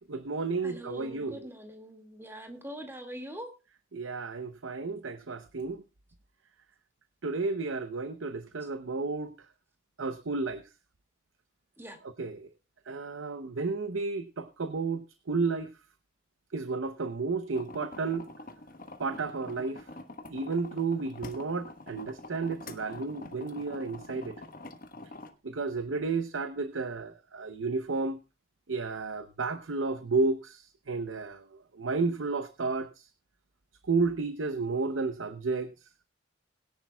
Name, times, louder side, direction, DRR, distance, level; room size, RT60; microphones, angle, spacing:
voice 1, 0.1-1.5 3.9-5.8 7.2-9.3 10.0-10.6 12.2-12.5 12.9-15.7 16.5-18.3 19.0-19.8 20.3-24.4 25.4-28.2 28.7-31.4 31.7-33.1 33.9-35.7, right 4 dB, 75° right, 0.8 m, -32 dB
voice 2, 0.6-3.5 8.6-8.7 11.8-12.0, equal, 10° right, 2.0 m, -43 dB
sound 1, 17.5-25.3, left 2 dB, 45° left, 1.2 m, -46 dB
21.0 x 10.5 x 2.3 m
head